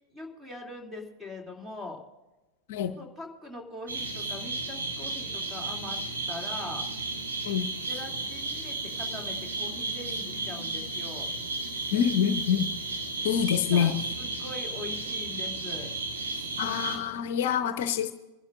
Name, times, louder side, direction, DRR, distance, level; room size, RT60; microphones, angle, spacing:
voice 1, 0.1-2.0 2.9-6.0 6.3-6.8 7.9-11.3 13.7-15.9, left 2 dB, 10° right, 1 dB, 2.6 m, -42 dB
sound 1, 3.9-17.0, right 2 dB, 70° right, 2.5 m, -34 dB
voice 2, 11.9-12.7 13.2-13.9 16.6-18.1, left 8 dB, 55° left, 10 dB, 0.7 m, -26 dB
26.5 x 11.5 x 2.5 m, 1.1 s
figure-of-eight pair, 90°, 0 cm